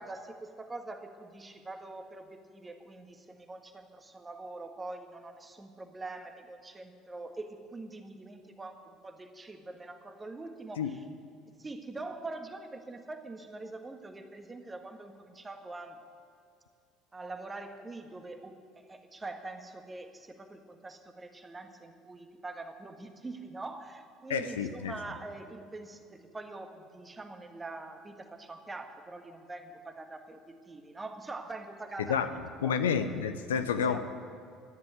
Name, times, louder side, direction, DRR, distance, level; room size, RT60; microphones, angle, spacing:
voice 1, 0.0-11.0 11.6-16.0 17.1-32.9 33.7-34.0, right 2 dB, 20° right, 5 dB, 1.6 m, -44 dB
voice 2, 24.3-24.9 32.0-32.3 32.6-34.0, left 7 dB, 75° left, 9 dB, 0.7 m, -29 dB
13.5 x 10.5 x 9.3 m, 2.4 s
figure-of-eight pair, 60°, 0 cm